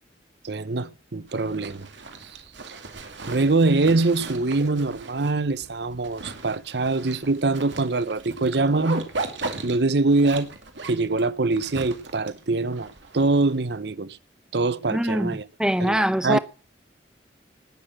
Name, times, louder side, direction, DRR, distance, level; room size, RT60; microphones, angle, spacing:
voice 1, 0.4-1.9 2.7-2.8 3.3-9.1 9.6-10.6 10.8-12.9 13.1-14.2 14.5-15.4 15.8-16.4, right 3 dB, 70° right, 0.8 m, -23 dB
Zipper (clothing), 1.3-13.8, right 3 dB, 90° right, 2.4 m, -37 dB
voice 2, 14.9-16.4, equal, 5° right, 0.7 m, -23 dB
18.5 x 6.6 x 7.6 m
head